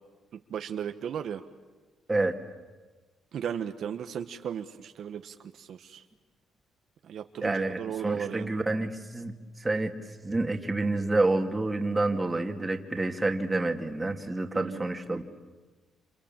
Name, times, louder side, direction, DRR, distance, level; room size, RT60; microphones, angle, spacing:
voice 1, 0.3-1.4 3.3-6.0 7.0-8.5 14.5-14.9, right 8 dB, 65° right, 7 dB, 1.2 m, -36 dB
voice 2, 7.4-9.9 10.2-15.2, right 2 dB, 20° right, 4 dB, 2.7 m, -28 dB
28.5 x 28.0 x 7.5 m, 1.3 s
cardioid pair, 90°, 0 cm